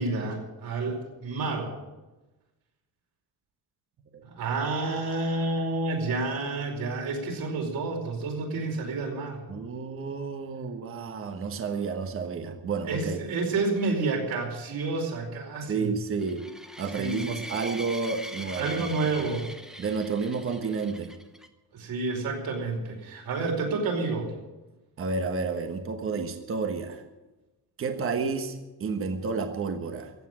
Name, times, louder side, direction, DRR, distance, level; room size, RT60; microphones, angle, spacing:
voice 1, 0.0-1.7 4.4-9.4 12.9-15.9 17.0-17.3 18.5-19.5 21.7-24.3, right 3 dB, 60° right, 1 dB, 4.9 m, -29 dB
voice 2, 9.5-13.2 15.7-16.4 16.8-18.9 19.2-19.3 19.8-21.1 25.0-27.0 27.8-30.1, right 4 dB, 35° right, 6 dB, 1.3 m, -31 dB
sound 1, 16.2-21.5, equal, ahead, 0.8 m, -42 dB
15.5 x 8.5 x 9.8 m, 1.1 s
cardioid pair, 165°, 39 cm